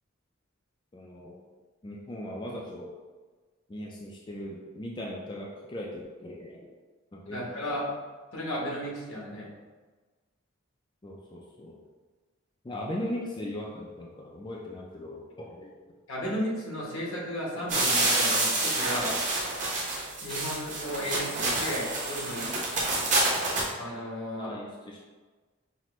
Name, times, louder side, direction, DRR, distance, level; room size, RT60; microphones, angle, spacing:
voice 1, 0.9-1.4 1.8-2.9 3.7-6.7 7.1-7.8 11.0-11.8 12.6-15.8 24.4-25.0, left 1 dB, 25° left, -2 dB, 0.4 m, -39 dB
voice 2, 7.3-7.9 8.3-9.5 16.1-19.1 20.2-22.5 23.8-24.5, equal, 85° left, -4 dB, 1.2 m, -34 dB
sound 1, 17.7-23.7, right 2 dB, 35° right, 1.0 m, -28 dB
5.7 x 2.2 x 3.0 m, 1.3 s
head